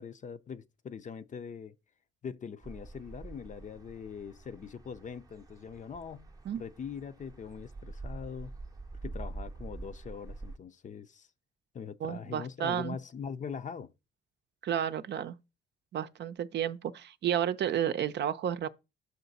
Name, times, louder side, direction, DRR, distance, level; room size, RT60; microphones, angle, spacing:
voice 1, 0.0-1.7 2.2-6.3 6.6-8.5 9.0-11.3 11.7-13.9, left 6 dB, 40° left, 0.5 m, -42 dB
sound 1, 2.6-10.6, right 2 dB, 20° right, 0.7 m, -46 dB
voice 2, 12.0-13.0 14.6-15.4 15.9-18.7, right 9 dB, 60° right, 0.6 m, -31 dB
6.5 x 5.7 x 4.0 m
cardioid pair, 90°, 20 cm